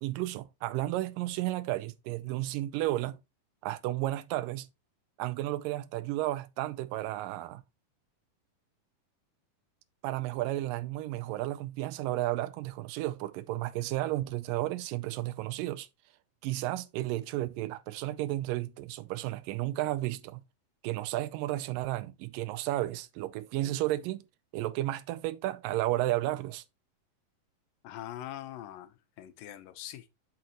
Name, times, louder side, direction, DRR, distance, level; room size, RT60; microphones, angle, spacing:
voice 1, 0.0-3.2 3.6-4.7 5.2-7.6 10.0-15.9 16.4-20.4 20.8-24.2 24.5-26.6, right 16 dB, 85° right, 2.3 m, -33 dB
voice 2, 27.8-30.1, left 12 dB, 85° left, 2.6 m, -43 dB
6.8 x 6.4 x 2.9 m
omnidirectional pair, 3.9 m